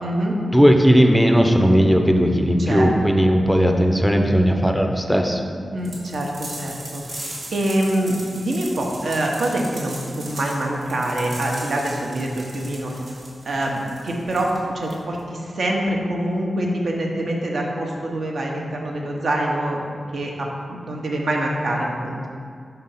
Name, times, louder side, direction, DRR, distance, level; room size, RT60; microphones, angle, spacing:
voice 1, 0.0-0.4 2.6-2.9 3.2-3.3 5.7-12.9 13.4-19.8 20.1-22.3, right 1 dB, 65° right, -1 dB, 0.9 m, -25 dB
voice 2, 0.5-5.4, equal, ahead, 3 dB, 0.5 m, -17 dB
sound 1, 5.9-15.2, right 1 dB, 85° right, 1.6 m, -38 dB
5.7 x 3.9 x 5.6 m, 2.2 s
wide cardioid pair, 160°, 0 cm